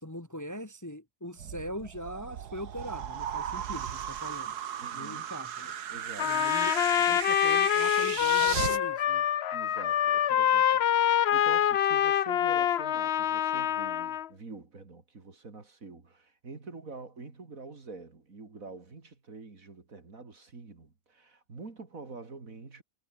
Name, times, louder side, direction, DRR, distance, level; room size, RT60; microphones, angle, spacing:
voice 1, 0.0-4.5 4.9-5.7 6.2-6.7 7.0-9.2, equal, 10° left, 1.5 m, -41 dB
sound 1, 1.4-8.8, right 9 dB, 80° right, 1.7 m, -36 dB
voice 2, 4.8-5.3 5.9-6.5 9.5-22.8, right 3 dB, 60° right, 3.3 m, -46 dB
Trumpet, 6.2-14.3, left 10 dB, 55° left, 0.8 m, -26 dB
omnidirectional pair, 1.7 m